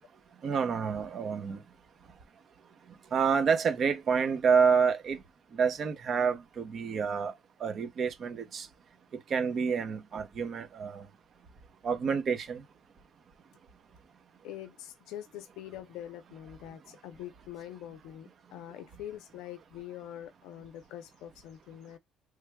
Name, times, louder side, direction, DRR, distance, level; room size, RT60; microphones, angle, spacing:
voice 1, 0.4-1.6 3.1-5.2 5.5-7.3 7.6-8.7 9.1-11.1 11.8-12.6, right 6 dB, 40° right, 0.8 m, -28 dB
voice 2, 14.4-22.0, left 11 dB, 80° left, 0.5 m, -44 dB
3.3 x 2.3 x 3.4 m
cardioid pair, 140°, 0 cm